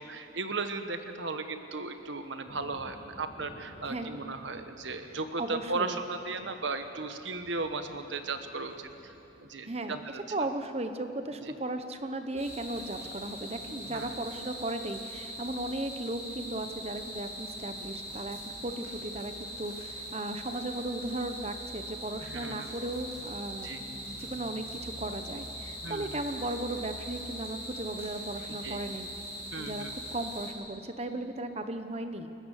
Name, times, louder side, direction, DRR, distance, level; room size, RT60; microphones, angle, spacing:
voice 1, 0.0-9.1 9.4-10.2 11.4-11.5 13.9-14.2 22.2-22.7 23.6-23.8 25.8-26.2 28.6-28.8 29.5-29.9, right 3 dB, 75° right, 8 dB, 1.2 m, -36 dB
Thunder, 2.5-9.5, equal, 50° left, 6.9 m, -54 dB
voice 2, 3.8-4.2 5.4-6.0 9.6-10.0 10.3-29.1 29.6-29.8 30.1-32.3, right 1 dB, 35° right, 8 dB, 1.1 m, -36 dB
sound 1, 12.4-30.5, equal, 15° right, 5.3 m, -41 dB
29.5 x 15.0 x 6.6 m, 2.9 s
head